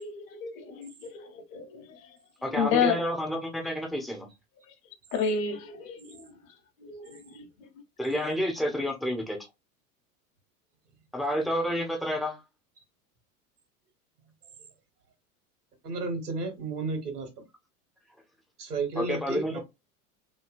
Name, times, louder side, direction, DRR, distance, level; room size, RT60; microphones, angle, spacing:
voice 1, 0.0-3.0 5.1-7.7, left 6 dB, 60° left, 0.9 m, -32 dB
voice 2, 2.4-4.3 8.0-9.4 11.1-12.4 19.0-19.6, equal, ahead, 0.3 m, -29 dB
voice 3, 15.8-17.3 18.6-19.6, right 3 dB, 85° right, 1.2 m, -32 dB
2.9 x 2.7 x 2.5 m
hypercardioid pair, 85°, 46 cm